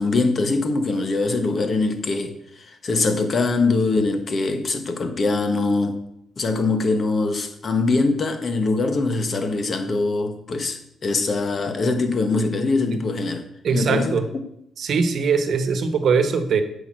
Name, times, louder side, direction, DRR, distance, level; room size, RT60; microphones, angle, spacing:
voice 1, 0.0-6.0 6.4-13.4 13.7-14.2, left 3 dB, 40° left, 1.3 m, -23 dB
voice 2, 13.6-14.2 14.8-16.6, right 5 dB, 60° right, 1.2 m, -21 dB
8.4 x 5.2 x 6.2 m
cardioid pair, 90°, 0 cm